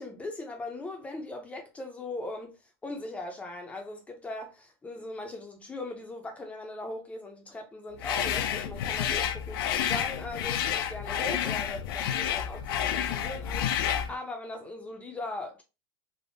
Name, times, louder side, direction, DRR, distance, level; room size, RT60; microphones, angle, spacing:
voice 1, 0.0-15.6, left 2 dB, 10° left, 0.5 m, -39 dB
sound 1, 8.0-14.1, left 9 dB, 65° left, 0.5 m, -30 dB
3.5 x 2.0 x 2.6 m
supercardioid pair, 155°, 13 cm